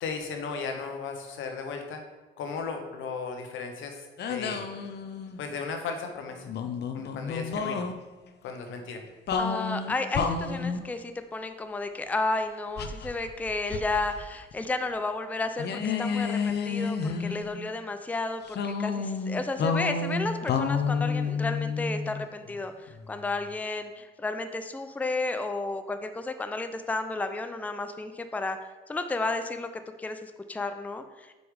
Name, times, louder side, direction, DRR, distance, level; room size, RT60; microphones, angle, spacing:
voice 1, 0.0-2.0 2.4-4.0 4.3-4.7 5.4-6.5 6.9-7.9 8.4-9.0, left 5 dB, 80° left, 5 dB, 1.0 m, -35 dB
sound 1, 4.2-5.5 6.4-7.9 9.3-10.9 12.8-14.2 14.5-14.6 15.6-17.7 18.5-22.3, left 5 dB, 60° left, 0.6 m, -30 dB
voice 2, 9.4-28.6 28.9-29.7 30.0-31.4, left 2 dB, 10° left, 8 dB, 0.4 m, -32 dB
5.3 x 4.7 x 4.7 m, 1.2 s
cardioid pair, 90°, 20 cm